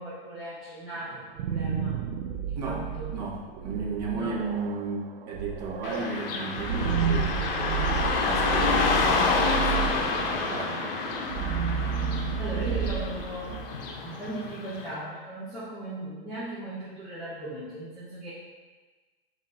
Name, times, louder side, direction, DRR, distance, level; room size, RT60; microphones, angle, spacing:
voice 1, 0.0-2.0 2.4-3.1 4.1-4.4 12.4-13.6 14.0-18.3, right 1 dB, ahead, -14 dB, 0.6 m, -37 dB
sound 1, 1.1-14.0, right 7 dB, 80° right, 0.5 m, -31 dB
voice 2, 2.6-7.9 8.2-11.0, right 3 dB, 45° right, -2 dB, 0.9 m, -35 dB
Car passing by / Traffic noise roadway noise, 5.8-14.9, left 4 dB, 65° left, 0.7 m, -28 dB
5.1 x 2.6 x 3.8 m, 1.3 s
supercardioid pair, 170°, 30 cm